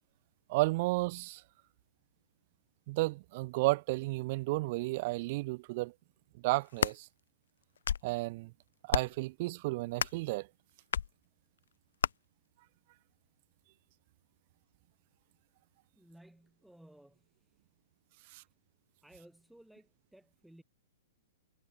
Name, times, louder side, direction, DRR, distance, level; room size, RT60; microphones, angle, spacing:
voice 1, 0.5-1.4 2.9-5.9 6.4-7.1 8.0-8.5 8.8-10.5 18.3-18.4, right 22 dB, 40° right, 0.8 m, -32 dB
sound 1, 6.5-7.0 7.6-8.1 8.9-9.2 10.0-10.3 10.9-11.1 12.0-12.1, left 8 dB, 85° left, 0.6 m, -32 dB
voice 2, 15.9-17.6 18.3-18.5 19.0-20.6, right 1 dB, ahead, 6.8 m, -59 dB
hypercardioid pair, 155°, 0 cm